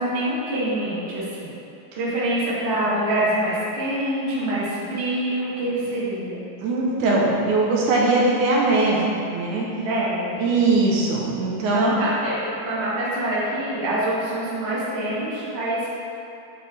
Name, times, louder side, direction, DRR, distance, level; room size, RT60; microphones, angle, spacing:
voice 1, 0.0-1.5 1.9-6.4 9.8-10.4 11.7-15.9, right 1 dB, 40° right, -9 dB, 1.0 m, -25 dB
voice 2, 6.6-9.7 10.4-11.9, right 2 dB, 80° right, -4 dB, 2.2 m, -21 dB
8.8 x 3.2 x 4.1 m, 2.6 s
omnidirectional pair, 3.6 m